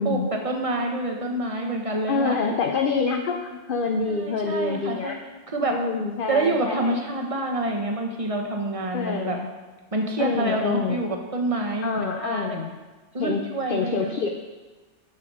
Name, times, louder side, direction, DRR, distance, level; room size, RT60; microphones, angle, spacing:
voice 1, 0.0-2.3 4.1-5.1 5.5-5.8 6.3-9.4 9.9-12.5 13.1-14.1, right 2 dB, 30° right, 2 dB, 1.2 m, -27 dB
voice 2, 2.1-5.2 5.7-6.9 8.9-9.4 10.2-11.1 11.8-12.7 13.2-13.4 13.7-14.3, left 4 dB, 55° left, 4 dB, 0.7 m, -26 dB
8.5 x 5.9 x 6.2 m, 1.3 s
omnidirectional pair, 1.2 m